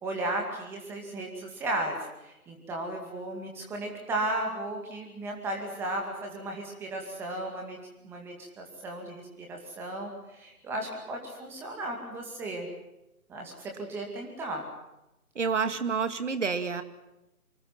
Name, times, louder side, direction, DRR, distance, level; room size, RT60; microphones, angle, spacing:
voice 1, 0.0-2.0 2.2-7.8 8.0-12.7 13.3-14.6, right 1 dB, 5° right, 2 dB, 2.1 m, -35 dB
voice 2, 15.4-16.8, right 5 dB, 55° right, 9 dB, 2.4 m, -28 dB
26.0 x 25.0 x 6.0 m, 0.93 s
figure-of-eight pair, 155°, 44 cm